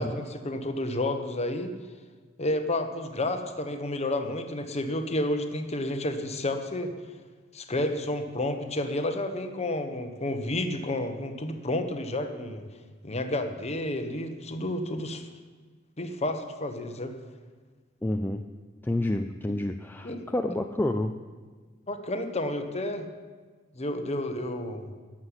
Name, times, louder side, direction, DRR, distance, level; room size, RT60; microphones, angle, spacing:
voice 1, 0.0-1.7 2.4-6.9 7.5-12.7 13.0-15.3 16.0-17.1 20.0-20.2 21.9-23.0 23.7-24.9, left 1 dB, 30° left, 6 dB, 1.1 m, -30 dB
voice 2, 18.0-18.4 18.8-21.2, left 1 dB, 10° left, 5 dB, 0.4 m, -29 dB
12.0 x 7.5 x 9.8 m, 1.5 s
head